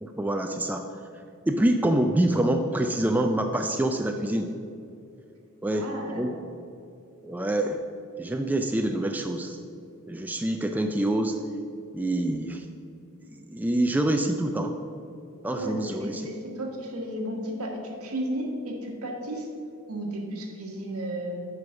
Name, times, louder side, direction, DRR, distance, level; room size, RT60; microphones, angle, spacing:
voice 1, 0.0-0.9 1.5-4.5 5.6-5.9 6.1-6.4 7.2-7.8 8.2-9.6 10.1-11.4 11.9-12.7 13.3-14.8 15.4-16.2, right 1 dB, 10° right, 5 dB, 0.3 m, -26 dB
voice 2, 5.7-6.2 15.5-19.5 19.9-21.4, right 1 dB, 75° right, 0 dB, 1.5 m, -33 dB
8.0 x 5.4 x 5.8 m, 2.6 s
head